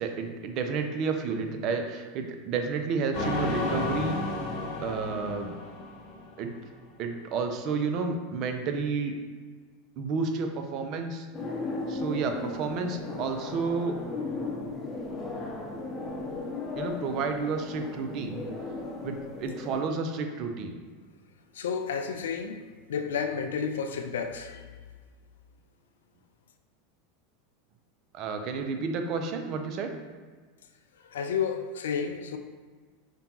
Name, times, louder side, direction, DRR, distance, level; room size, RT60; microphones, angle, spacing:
voice 1, 0.0-4.2 4.8-5.5 6.4-6.5 7.0-9.1 10.0-11.3 11.9-14.0 16.8-18.4 19.0-20.8 28.1-29.9, right 4 dB, 50° right, 5 dB, 0.4 m, -31 dB
sound 1, 3.1-6.6, left 2 dB, 50° left, 0.9 m, -32 dB
sound 2, 11.3-19.8, left 3 dB, 20° left, 0.7 m, -36 dB
voice 2, 21.5-22.6 22.9-24.7 31.0-32.4, left 6 dB, 75° left, 7 dB, 0.3 m, -31 dB
5.0 x 2.2 x 2.9 m, 1.5 s
hypercardioid pair, 90°, 0 cm